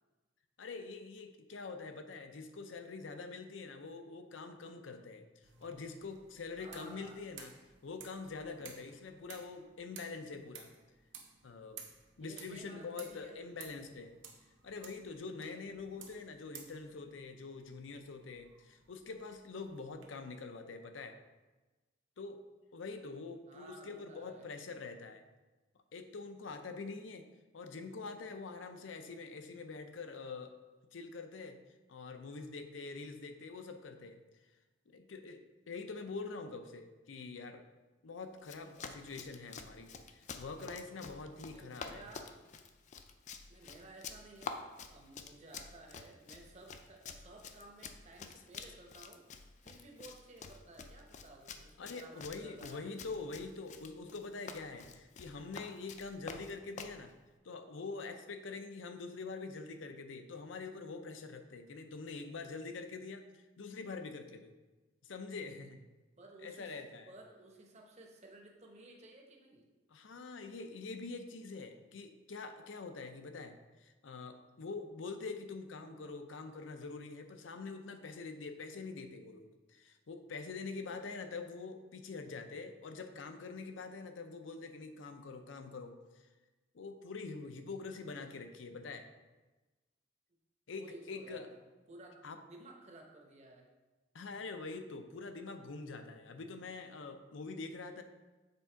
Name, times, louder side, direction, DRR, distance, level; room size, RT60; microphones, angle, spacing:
voice 1, 0.6-5.3 5.6-7.5 7.8-10.7 11.4-11.8 12.2-14.2 14.6-21.2 22.2-22.4 22.7-25.2 25.9-27.2 27.5-30.5 30.9-31.6 31.9-34.2 34.9-37.6 38.0-42.0 51.8-57.1 57.4-64.5 65.0-65.8 66.4-67.1 69.9-86.0 86.7-89.1 90.7-91.5 92.2-92.4 94.1-98.0, left 4 dB, 85° left, 7 dB, 0.6 m, -45 dB
sound 1, 5.4-20.1, right 6 dB, 75° right, 0.9 m, -56 dB
voice 2, 6.6-7.2 12.2-13.6 23.5-24.5 41.5-42.4 43.5-49.3 49.6-53.0 66.2-66.8 67.1-69.7 90.7-91.5 91.9-93.7, right 2 dB, 35° right, 1 dB, 0.9 m, -55 dB
Run, 38.4-57.0, left 5 dB, 40° left, 0.4 m, -49 dB
6.9 x 3.6 x 4.5 m, 1.2 s
head